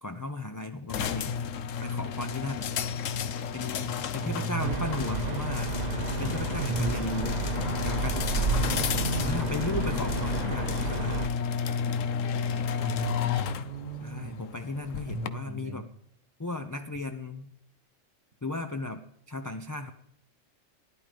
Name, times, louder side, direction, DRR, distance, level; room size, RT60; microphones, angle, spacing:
voice 1, 0.0-1.4 1.8-2.7 3.5-5.7 6.2-7.4 7.8-8.7 9.2-11.3 14.0-15.9 16.4-17.5 18.4-19.9, left 2 dB, 25° left, 6 dB, 0.4 m, -36 dB
sound 1, 0.9-15.3, left 6 dB, 80° left, 1.1 m, -32 dB
voice 2, 4.2-5.3 6.6-7.0 8.5-9.5 12.8-14.5 15.0-15.9, right 1 dB, 60° right, 8 dB, 1.5 m, -34 dB
sound 2, 4.6-11.3, right 5 dB, 40° right, 0.7 m, -32 dB
15.0 x 10.5 x 5.1 m, 0.76 s
omnidirectional pair, 1.3 m